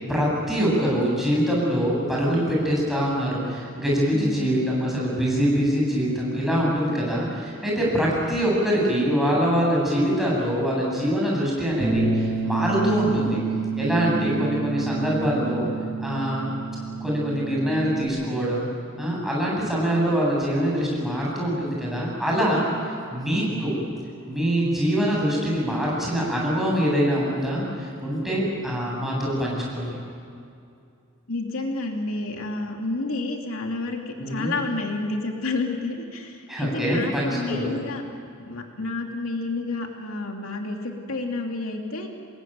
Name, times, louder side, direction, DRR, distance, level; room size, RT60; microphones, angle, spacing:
voice 1, 0.1-13.4 13.8-15.7 16.0-16.5 17.0-18.6 19.0-22.7 23.1-23.7 24.3-29.9 34.2-34.5 36.5-37.7, equal, ahead, -5 dB, 7.9 m, -24 dB
voice 2, 4.1-4.6 14.1-14.5 31.3-38.0 38.5-42.1, left 2 dB, 90° left, 2 dB, 2.8 m, -30 dB
Bass guitar, 11.8-18.1, right 4 dB, 20° right, 7.7 m, -28 dB
27.0 x 21.0 x 9.2 m, 2.5 s
head